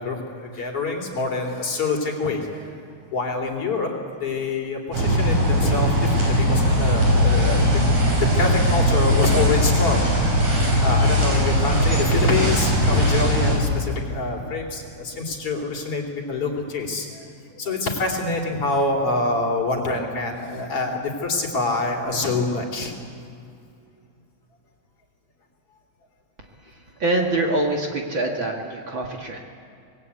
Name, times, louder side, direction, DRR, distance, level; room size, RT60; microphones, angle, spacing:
voice 1, 0.0-2.8 3.1-3.9 4.2-10.1 10.8-17.3 17.5-22.9, left 3 dB, 50° left, 0 dB, 4.1 m, -26 dB
sound 1, 4.9-13.6, equal, 90° right, 7.5 m, -19 dB
voice 2, 27.0-29.4, right 2 dB, 45° right, 0 dB, 2.5 m, -24 dB
26.0 x 20.5 x 8.4 m, 2.5 s
omnidirectional pair, 3.4 m